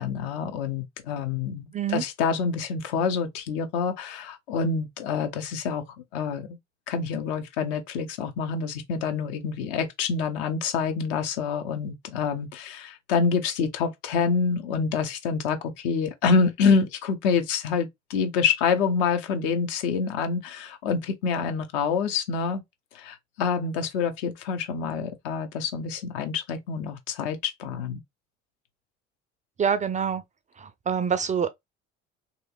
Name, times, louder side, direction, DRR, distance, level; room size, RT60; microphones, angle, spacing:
voice 1, 0.0-5.8 6.1-6.5 6.9-22.6 22.9-28.0, left 5 dB, 65° left, 0.8 m, -27 dB
voice 2, 29.6-30.2 30.6-31.5, right 7 dB, 20° right, 0.4 m, -26 dB
3.0 x 2.8 x 2.3 m
figure-of-eight pair, 55°, 35 cm